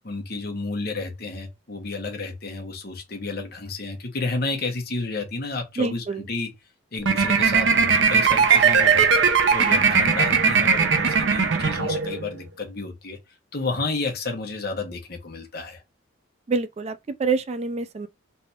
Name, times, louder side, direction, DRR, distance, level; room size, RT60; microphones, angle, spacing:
voice 1, 0.0-6.5 6.9-15.8, left 3 dB, 50° left, 1.1 m, -31 dB
voice 2, 5.8-6.3 16.5-18.1, right 4 dB, 35° right, 0.3 m, -26 dB
sound 1, 7.0-12.3, right 5 dB, 65° right, 0.6 m, -19 dB
3.3 x 3.3 x 2.8 m
head